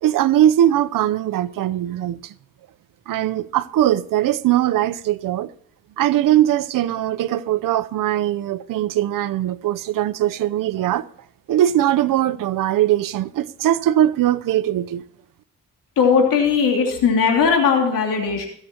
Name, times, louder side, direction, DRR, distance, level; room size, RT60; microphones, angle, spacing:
voice 1, 0.0-2.3 3.1-5.5 6.0-11.1 11.5-15.0, right 12 dB, 80° right, 0.8 m, -20 dB
voice 2, 16.0-18.5, left 6 dB, 80° left, 2.9 m, -18 dB
22.5 x 7.8 x 2.9 m
cardioid pair, 70°, 33 cm